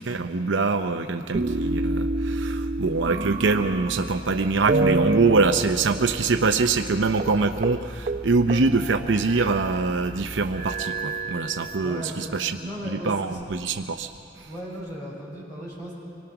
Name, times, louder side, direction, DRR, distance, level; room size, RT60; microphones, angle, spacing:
voice 1, 0.0-12.6 12.8-14.1 14.4-14.5, right 4 dB, 80° right, 7 dB, 0.7 m, -24 dB
sound 1, 1.3-4.3 4.7-6.5 6.8-6.9 7.2-7.4 7.6-7.8 8.1-9.8 10.5-12.1 12.8-13.8, right 2 dB, 45° right, 0.6 m, -29 dB
sound 2, 2.8-10.7, equal, 5° left, 5.9 m, -40 dB
voice 2, 11.8-12.3 12.6-13.4 13.7-13.8 14.4-15.9, equal, 20° left, -6 dB, 6.3 m, -36 dB
25.5 x 20.0 x 6.0 m, 2.5 s
head